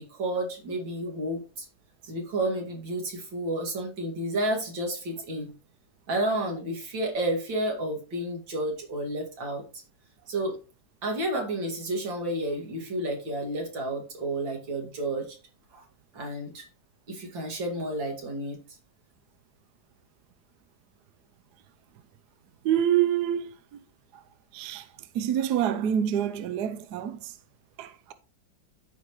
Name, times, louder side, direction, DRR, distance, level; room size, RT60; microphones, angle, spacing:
voice 1, 0.0-1.7 2.0-5.5 6.1-9.6 10.3-10.6 11.0-15.4 15.7-15.8 16.1-16.7 17.1-18.6, right 1 dB, 85° right, 3.0 m, -31 dB
voice 2, 22.6-23.8 24.1-24.2 24.5-27.4 27.8-28.1, right 10 dB, 70° right, 1.1 m, -27 dB
13.5 x 5.1 x 3.1 m
omnidirectional pair, 2.0 m